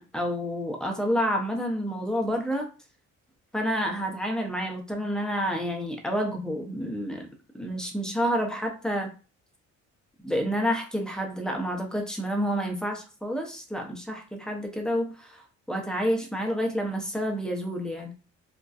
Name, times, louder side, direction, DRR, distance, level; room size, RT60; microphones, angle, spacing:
voice 1, 0.0-2.7 3.5-7.3 7.5-9.1 10.2-15.4 15.7-18.1, equal, ahead, 1 dB, 0.6 m, -29 dB
2.5 x 2.1 x 2.3 m, 0.34 s
cardioid pair, 90°, 30 cm